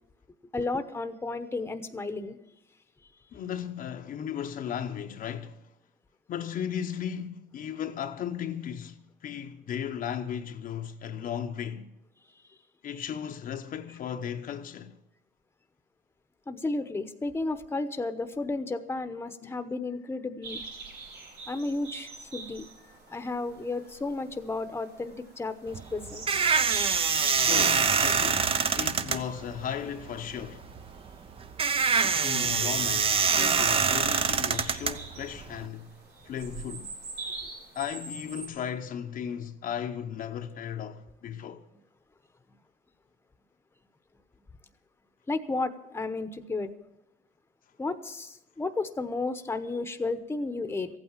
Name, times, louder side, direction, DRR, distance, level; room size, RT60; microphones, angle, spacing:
voice 1, 0.5-2.4 16.5-20.6 21.5-26.3 32.4-32.5 45.3-46.7 47.8-50.9, left 3 dB, 15° left, 0.9 m, -33 dB
voice 2, 3.3-5.7 6.3-11.9 12.8-15.0 19.4-19.6 27.5-30.7 31.9-36.0 36.2-36.9 37.7-41.7, left 8 dB, 55° left, 0.8 m, -36 dB
sound 1, 20.4-38.5, right 4 dB, 80° right, 5.5 m, -44 dB
sound 2, 25.7-35.6, right 6 dB, 35° right, 0.7 m, -25 dB
15.0 x 8.9 x 7.4 m
cardioid pair, 110°, 17 cm